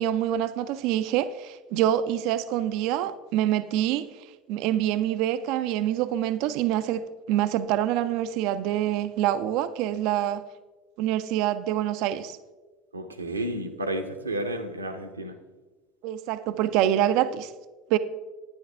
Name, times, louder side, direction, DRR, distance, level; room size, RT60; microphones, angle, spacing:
voice 1, 0.0-4.1 4.5-10.4 11.0-12.4 16.0-17.5 17.9-18.0, right 12 dB, 55° right, 0.3 m, -26 dB
voice 2, 12.9-15.4, right 1 dB, 85° right, 0.7 m, -31 dB
10.5 x 9.6 x 3.4 m
figure-of-eight pair, 70°, 0 cm